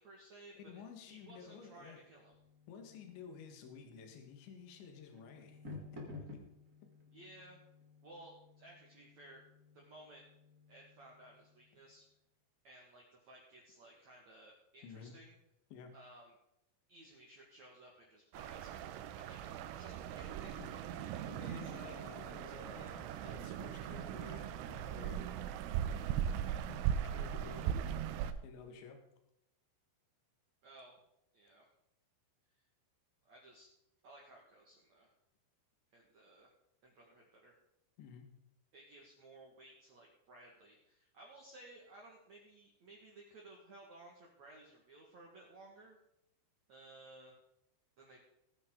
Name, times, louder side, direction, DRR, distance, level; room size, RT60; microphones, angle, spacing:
voice 1, 0.0-2.4 7.1-7.6 8.0-9.4 9.7-10.2 10.7-12.1 12.6-15.4 15.9-16.3 16.9-22.0 30.6-31.0 31.3-31.7 33.3-33.7 34.0-35.1 35.9-36.5 36.8-37.5 38.7-46.0 46.7-47.3 48.0-48.2, right 2 dB, 50° right, -2 dB, 2.4 m, -58 dB
voice 2, 0.6-2.0 2.7-5.6 5.9-6.0 14.8-15.1 15.7-15.9 20.6-25.2 26.7-27.8 28.4-29.0 38.0-38.3, left 6 dB, 70° left, 4 dB, 3.9 m, -52 dB
sound 1, 1.1-11.9, left 3 dB, 35° right, 1.6 m, -55 dB
sound 2, 18.3-28.3, right 9 dB, 90° right, 3.3 m, -39 dB
18.5 x 9.8 x 3.9 m, 0.82 s
omnidirectional pair, 5.4 m